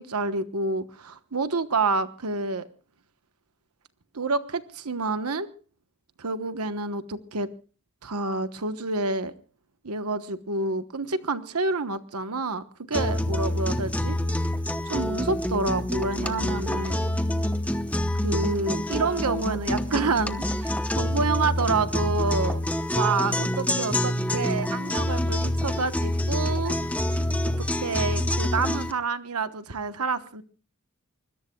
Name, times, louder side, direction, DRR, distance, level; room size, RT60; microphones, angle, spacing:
voice 1, 0.0-2.7 4.1-5.5 6.2-7.5 8.0-9.3 9.8-14.2 14.8-17.0 18.2-22.6 23.0-26.7 27.6-30.4, right 3 dB, 85° right, 11 dB, 1.2 m, -28 dB
sound 1, 12.9-28.9, left 1 dB, 5° left, 0.9 m, -27 dB
25.5 x 21.0 x 2.3 m, 0.38 s
head